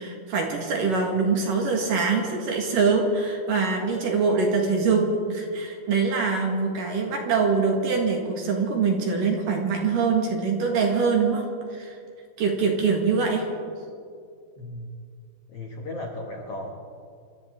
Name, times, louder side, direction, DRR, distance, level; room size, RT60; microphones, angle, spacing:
voice 1, 0.0-11.4 11.7-12.0 12.4-13.5, right 4 dB, 60° right, 0 dB, 3.0 m, -24 dB
voice 2, 14.6-14.9 15.5-16.7, left 1 dB, 80° left, 1 dB, 1.3 m, -36 dB
27.0 x 13.5 x 3.7 m, 2.3 s
omnidirectional pair, 4.8 m